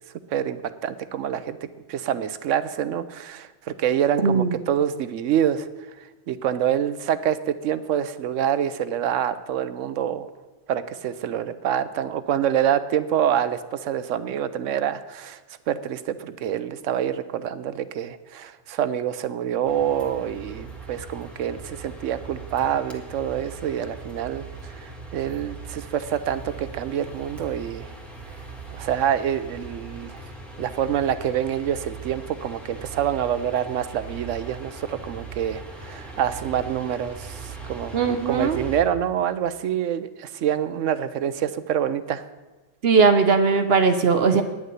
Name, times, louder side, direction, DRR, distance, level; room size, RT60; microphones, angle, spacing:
voice 1, 0.3-5.7 6.3-10.3 10.7-15.4 15.7-27.9 28.7-30.2 30.6-42.2, right 9 dB, 85° right, 13 dB, 1.0 m, -26 dB
voice 2, 4.2-4.6 37.9-38.6 42.8-44.4, right 5 dB, 60° right, 7 dB, 0.9 m, -19 dB
sound 1, 19.7-38.8, right 4 dB, ahead, 1.6 m, -40 dB
10.0 x 6.6 x 9.1 m, 1.2 s
omnidirectional pair, 1.3 m